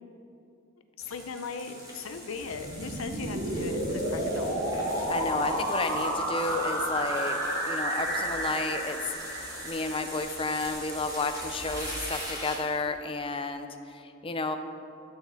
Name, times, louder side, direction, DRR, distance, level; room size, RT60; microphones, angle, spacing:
voice 1, 1.0-4.7, left 4 dB, 85° left, 8 dB, 0.7 m, -38 dB
sound 1, 1.0-12.8, equal, 20° right, 2.0 m, -42 dB
sound 2, 2.4-10.3, right 1 dB, 65° right, 1.5 m, -31 dB
voice 2, 5.1-7.4 7.6-9.0 9.6-14.6, left 3 dB, 25° left, 7 dB, 0.5 m, -32 dB
11.5 x 8.1 x 4.1 m, 2.6 s
head